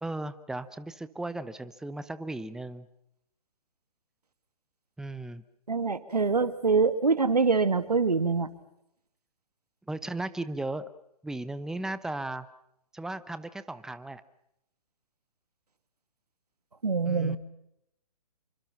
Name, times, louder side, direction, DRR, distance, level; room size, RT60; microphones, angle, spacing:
voice 1, 0.0-2.9 5.0-5.4 9.9-10.8 11.2-12.5 12.9-14.2 17.1-17.4, right 2 dB, 5° right, 14 dB, 0.9 m, -36 dB
voice 2, 5.7-8.5 16.8-17.4, right 4 dB, 90° right, 12 dB, 2.1 m, -24 dB
27.5 x 24.5 x 5.9 m, 0.78 s
hypercardioid pair, 130°, 20 cm